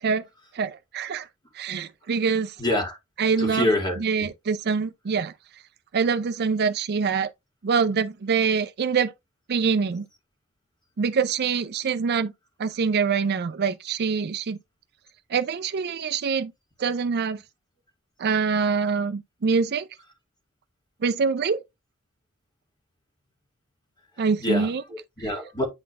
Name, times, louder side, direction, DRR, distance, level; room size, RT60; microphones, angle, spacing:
voice 1, 0.5-1.3 1.5-2.6 3.2-3.7 4.0-5.3 5.9-7.3 7.6-9.1 9.5-10.1 11.0-12.3 12.6-14.6 15.3-16.5 16.8-17.4 18.2-19.9 21.0-21.6 24.2-24.8, right 5 dB, 50° right, 0.4 m, -24 dB
voice 2, 2.6-3.0 3.4-4.3 24.2-25.6, left 1 dB, 20° left, 2.0 m, -27 dB
8.7 x 4.0 x 3.1 m
head